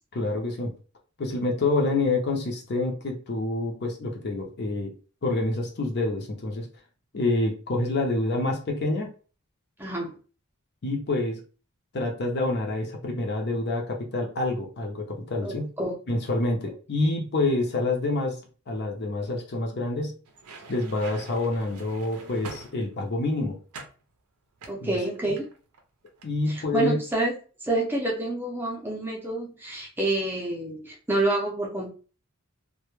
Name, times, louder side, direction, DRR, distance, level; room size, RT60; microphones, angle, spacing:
voice 1, 0.1-0.7 1.2-4.9 5.2-6.7 7.1-9.1 10.8-11.4 11.9-15.7 16.1-18.4 18.7-20.2 20.7-23.6 24.8-24.9 26.2-27.0, left 2 dB, 50° left, 1 dB, 0.6 m, -27 dB
voice 2, 9.8-10.2 15.4-15.9 24.7-25.5 26.5-27.3 27.6-31.9, right 2 dB, 10° right, -3 dB, 0.6 m, -28 dB
sound 1, 20.3-23.2 23.7-24.0 24.6-25.8 26.1-26.3, right 4 dB, 85° right, 0.5 m, -44 dB
2.2 x 2.1 x 3.0 m, 0.37 s
head